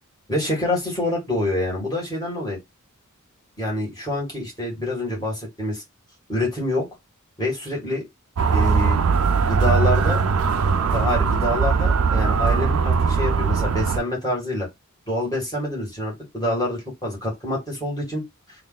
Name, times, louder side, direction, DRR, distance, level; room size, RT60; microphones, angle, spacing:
voice 1, 0.3-2.6 3.6-5.8 6.3-6.9 7.4-8.0 8.5-9.0 9.5-10.2 10.9-14.7 15.1-18.2, left 1 dB, 20° left, 2.0 m, -26 dB
Motor vehicle (road) / Siren, 8.4-14.0, right 5 dB, 85° right, 0.4 m, -20 dB
3.3 x 2.5 x 3.9 m
head